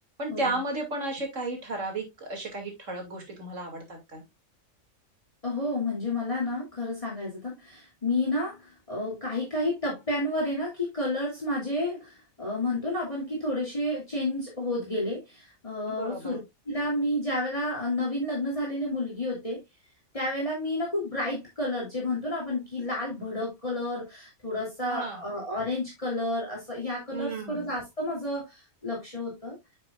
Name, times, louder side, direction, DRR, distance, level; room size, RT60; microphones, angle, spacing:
voice 1, 0.2-4.2 15.9-16.4 24.9-25.2 27.1-27.7, right 2 dB, 65° right, 3 dB, 2.9 m, -33 dB
voice 2, 5.4-16.4 16.7-19.6 20.1-29.6, left 1 dB, 25° left, -3 dB, 2.9 m, -30 dB
10.0 x 6.5 x 2.4 m, 0.20 s
omnidirectional pair, 1.4 m